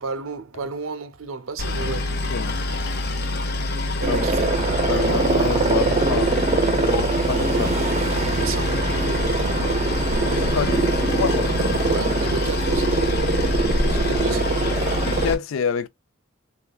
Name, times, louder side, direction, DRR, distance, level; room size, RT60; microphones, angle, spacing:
voice 1, 0.0-2.1 4.0-4.5 8.4-9.5 11.8-15.1, right 4 dB, 75° right, 0.6 m, -33 dB
Boat Water vehicle, 1.6-15.3, left 2 dB, 55° left, 0.8 m, -26 dB
voice 2, 2.3-2.6 4.1-4.2 4.9-6.3 6.8-7.8 10.3-11.5 15.0-15.9, left 7 dB, 75° left, 0.4 m, -27 dB
sound 1, 4.0-15.3, right 3 dB, 35° right, 0.5 m, -23 dB
3.7 x 2.2 x 2.3 m
head